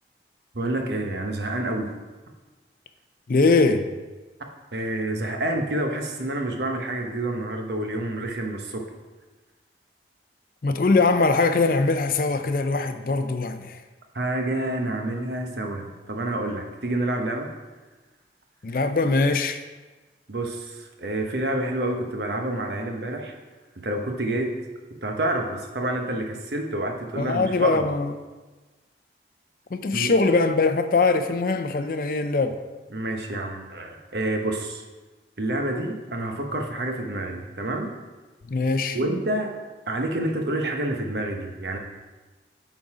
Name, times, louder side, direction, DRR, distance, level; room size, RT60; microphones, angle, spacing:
voice 1, 0.5-1.9 4.7-8.9 14.1-17.5 20.3-23.4 23.8-24.5 25.0-27.9 29.9-30.1 32.9-34.8 35.4-37.9 38.9-39.5 39.9-41.8, right 1 dB, 70° right, 3 dB, 0.9 m, -28 dB
voice 2, 3.3-3.9 10.6-13.8 18.6-19.6 27.2-28.1 29.7-32.6 38.5-39.0, left 3 dB, 50° left, 9 dB, 0.4 m, -22 dB
8.9 x 3.9 x 4.8 m, 1.2 s
head